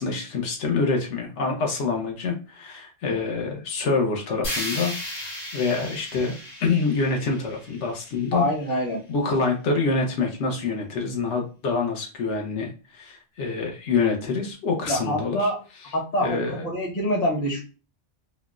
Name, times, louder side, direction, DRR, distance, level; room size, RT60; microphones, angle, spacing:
voice 1, 0.0-4.9 5.5-8.4 9.1-15.4 16.2-16.6, left 4 dB, 80° left, 1 dB, 1.0 m, -26 dB
sound 1, 4.4-8.5, left 1 dB, 55° left, 1.3 m, -35 dB
voice 2, 8.3-9.0 14.9-15.6 15.8-17.6, equal, 40° left, -1 dB, 1.0 m, -25 dB
3.8 x 2.2 x 2.4 m, 0.33 s
omnidirectional pair, 1.2 m